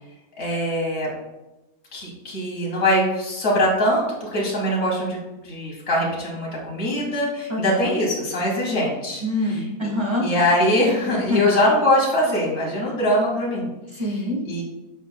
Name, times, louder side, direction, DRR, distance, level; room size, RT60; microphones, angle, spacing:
voice 1, 0.4-1.1 1.9-5.2 5.4-9.2 9.8-9.9 10.2-14.0 14.5-14.6, left 1 dB, 50° left, -4 dB, 2.4 m, -22 dB
voice 2, 7.5-7.9 9.2-10.2 11.1-11.4 13.9-14.4, left 1 dB, 20° right, -3 dB, 1.4 m, -25 dB
8.0 x 6.1 x 2.2 m, 1.0 s
omnidirectional pair, 1.7 m